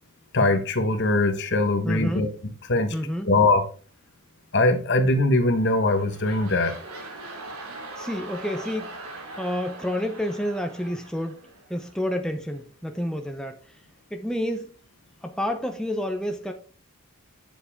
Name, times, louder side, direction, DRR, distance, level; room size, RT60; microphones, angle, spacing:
voice 1, 0.3-2.3 2.6-2.9 3.3-3.6 4.5-6.8, left 2 dB, 50° left, 1.2 m, -21 dB
voice 2, 1.8-2.3 2.9-3.3 8.0-9.0 9.3-11.4 11.7-13.8 14.1-14.8 15.2-16.5, left 1 dB, 5° left, 0.6 m, -29 dB
sound 1, 5.5-12.0 12.6-12.7, right 2 dB, 85° right, 2.5 m, -41 dB
9.2 x 7.2 x 3.6 m
head